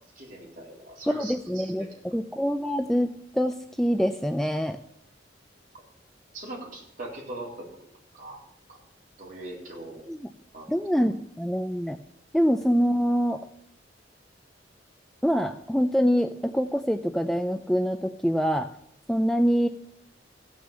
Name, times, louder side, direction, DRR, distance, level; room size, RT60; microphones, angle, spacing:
voice 1, 0.2-1.9 6.3-7.7 8.1-8.4 8.7-8.8 9.2-10.0 10.5-10.7, right 2 dB, 45° right, -3 dB, 3.8 m, -40 dB
voice 2, 1.1-3.1 3.3-4.8 10.1-10.3 10.7-12.0 12.3-13.4 15.2-18.7 19.1-19.7, equal, ahead, 8 dB, 0.4 m, -25 dB
15.5 x 6.3 x 7.0 m, 0.68 s
head